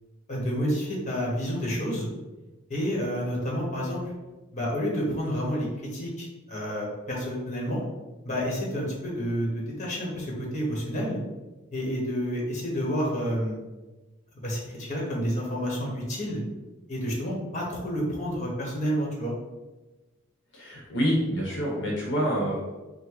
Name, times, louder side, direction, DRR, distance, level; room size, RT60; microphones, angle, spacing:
voice 1, 0.3-2.1 2.7-4.0 4.5-7.8 8.2-11.2 11.7-13.6 14.4-16.4 16.9-19.3, equal, 40° left, -3 dB, 1.2 m, -29 dB
voice 2, 20.5-22.9, equal, 65° left, -2 dB, 1.0 m, -27 dB
5.5 x 2.2 x 3.9 m, 1.1 s
head